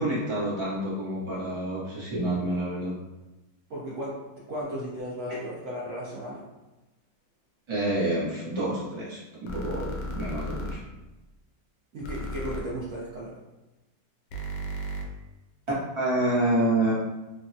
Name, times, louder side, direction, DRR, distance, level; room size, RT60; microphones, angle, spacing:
voice 1, 0.0-2.9 7.7-10.8 15.9-16.9, right 1 dB, 45° right, -8 dB, 0.3 m, -28 dB
voice 2, 3.7-6.4 11.9-13.3, equal, 85° right, -7 dB, 0.6 m, -35 dB
sound 1, 9.5-10.7 12.0-12.6 14.3-15.0, equal, 75° left, 1.1 m, -34 dB
3.3 x 2.1 x 2.6 m, 1.0 s
omnidirectional pair, 2.0 m